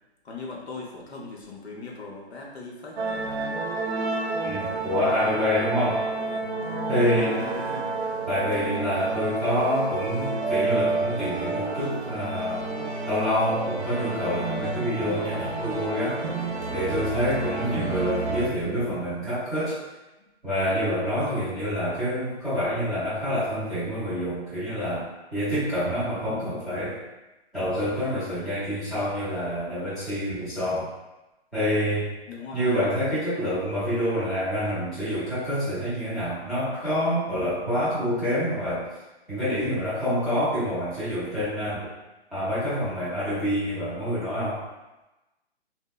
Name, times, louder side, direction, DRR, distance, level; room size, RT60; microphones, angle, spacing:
voice 1, 0.2-3.0 5.2-5.5 7.1-8.0 17.6-17.9 20.2-20.3 21.4-21.6 32.3-32.6, left 3 dB, 75° left, -2 dB, 0.7 m, -40 dB
sound 1, 3.0-18.5, right 3 dB, 80° right, 0.5 m, -30 dB
voice 2, 4.4-6.1 6.9-7.4 8.3-12.7 13.1-16.2 16.7-19.8 20.4-27.0 27.5-30.9 31.5-32.1 32.5-38.9 39.3-41.9 42.3-44.6, equal, ahead, -16 dB, 0.5 m, -27 dB
2.7 x 2.0 x 2.2 m, 1.0 s
hypercardioid pair, 140°, 32 cm